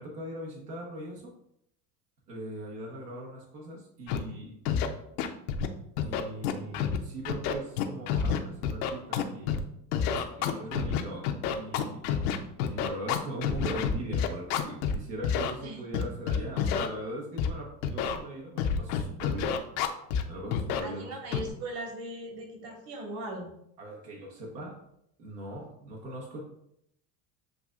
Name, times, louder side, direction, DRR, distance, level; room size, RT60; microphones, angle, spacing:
voice 1, 0.0-1.3 2.3-4.5 6.0-9.5 10.3-12.1 12.7-19.5 20.2-21.1 23.8-24.8 25.2-26.4, right 1 dB, 80° right, -2 dB, 1.3 m, -40 dB
Scratching (performance technique), 4.1-4.2 4.6-4.9 5.2-5.7 6.0-7.0 7.2-9.6 9.9-14.9 15.2-15.5 15.9-16.9 17.4-17.5 17.8-18.2 18.6-20.2 20.5-20.8 21.3-21.5, left 8 dB, 65° left, 0.8 m, -28 dB
voice 2, 20.8-23.5, right 1 dB, 50° right, 1 dB, 1.6 m, -39 dB
7.7 x 2.6 x 2.5 m, 0.74 s
hypercardioid pair, 80°, 48 cm